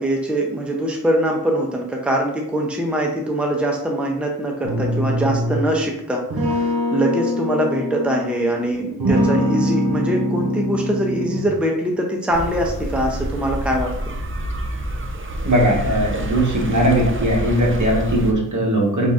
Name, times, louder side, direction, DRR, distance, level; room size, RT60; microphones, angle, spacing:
voice 1, 0.0-14.1, right 1 dB, 5° right, 0 dB, 0.7 m, -23 dB
sound 1, 4.6-5.7 6.3-8.6 9.0-11.6, equal, 80° right, 1.1 m, -23 dB
sound 2, 12.3-18.3, right 1 dB, 35° right, 0.6 m, -27 dB
voice 2, 15.4-19.1, right 1 dB, 55° right, -2 dB, 1.1 m, -19 dB
4.6 x 3.9 x 2.5 m, 0.74 s
wide cardioid pair, 75°, 36 cm